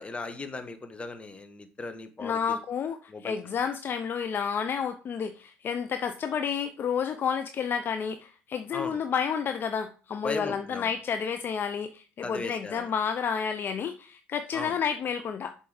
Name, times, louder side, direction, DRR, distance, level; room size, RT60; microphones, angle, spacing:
voice 1, 0.0-2.6 3.1-3.4 8.7-9.0 10.2-10.9 12.2-12.9 14.5-14.8, left 3 dB, 25° left, 9 dB, 1.3 m, -37 dB
voice 2, 2.2-15.5, left 7 dB, 45° left, 8 dB, 0.6 m, -30 dB
7.1 x 4.5 x 5.0 m, 0.37 s
supercardioid pair, 70°, 5 cm